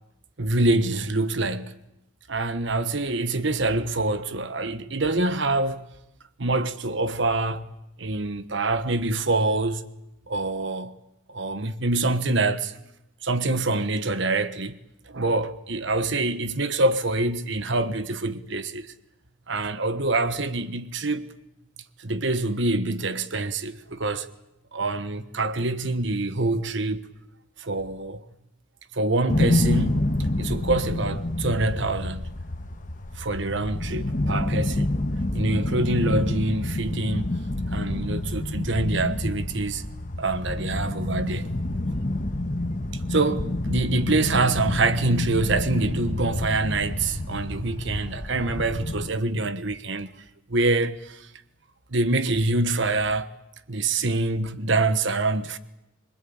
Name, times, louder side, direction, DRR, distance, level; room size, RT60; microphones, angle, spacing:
voice 1, 0.4-1.7 2.3-5.8 6.4-7.7 8.0-9.8 10.3-11.0 11.3-12.7 13.2-14.8 15.1-18.9 19.5-21.3 22.0-24.3 24.7-27.0 27.6-28.2 28.9-30.1 30.4-32.3 33.1-34.9 35.3-37.4 37.7-39.8 40.2-41.5 43.1-50.1 50.5-51.3 51.9-53.3 53.7-55.6, right 2 dB, 60° right, 1.3 m, -25 dB
sound 1, 29.3-49.1, left 1 dB, 40° left, 1.3 m, -28 dB
25.0 x 23.0 x 8.7 m
head